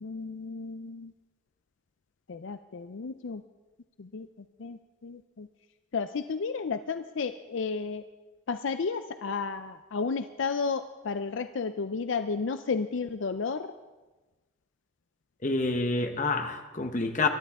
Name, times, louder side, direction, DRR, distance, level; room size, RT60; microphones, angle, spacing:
voice 1, 0.0-1.1 2.3-3.4 4.0-4.3 4.6-5.5 5.9-8.0 8.5-13.7, left 5 dB, 70° left, 10 dB, 0.5 m, -32 dB
voice 2, 15.4-17.3, left 3 dB, 40° left, 5 dB, 1.1 m, -28 dB
22.5 x 12.5 x 3.6 m, 1.2 s
head